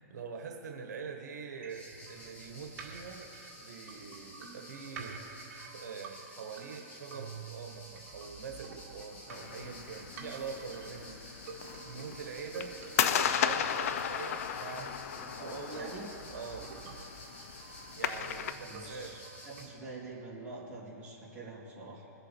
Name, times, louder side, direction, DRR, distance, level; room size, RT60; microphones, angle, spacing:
voice 1, 0.0-3.3 3.6-5.2 5.7-11.4 11.8-12.7 13.1-15.9 16.3-16.7 18.0-19.2, right 5 dB, 75° right, 3 dB, 1.4 m, -44 dB
sound 1, 1.6-19.6, right 5 dB, 55° right, 1.9 m, -50 dB
sound 2, 1.7-19.7, left 1 dB, 15° left, 1.8 m, -52 dB
sound 3, 9.3-18.5, left 8 dB, 55° left, 0.6 m, -35 dB
voice 2, 15.1-16.1 18.6-22.1, right 2 dB, 15° right, -8 dB, 2.9 m, -45 dB
22.5 x 7.6 x 4.4 m, 2.8 s
hypercardioid pair, 155°, 9 cm